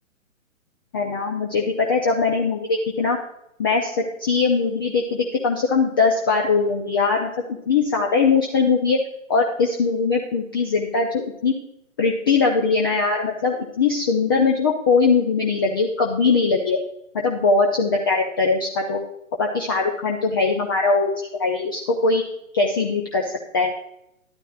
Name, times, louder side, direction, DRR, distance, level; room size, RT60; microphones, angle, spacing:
voice 1, 0.9-3.2 3.6-9.0 9.3-11.5 12.0-16.8 17.2-19.0 19.4-22.2 22.5-23.7, left 4 dB, 15° left, 1 dB, 0.5 m, -21 dB
12.5 x 12.0 x 2.5 m, 0.78 s
figure-of-eight pair, 135°, 41 cm